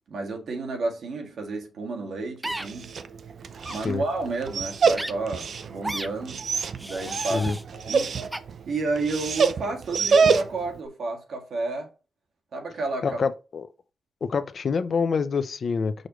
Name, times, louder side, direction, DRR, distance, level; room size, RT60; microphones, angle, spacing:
voice 1, 0.1-2.9 3.7-6.4 6.8-8.2 8.7-11.9 12.5-13.2, right 3 dB, 90° right, 1.8 m, -31 dB
sound 1, 2.4-2.7 3.6-3.8 5.0-5.1 5.8-6.1 6.8-7.6 8.3-8.4, right 1 dB, 10° right, 0.4 m, -33 dB
Dog, 2.5-10.8, right 5 dB, 70° right, 0.5 m, -27 dB
voice 2, 3.7-4.0 7.3-7.6 13.0-13.7 14.2-15.9, left 5 dB, 55° left, 0.6 m, -26 dB
6.4 x 3.1 x 5.1 m
wide cardioid pair, 145°, 0 cm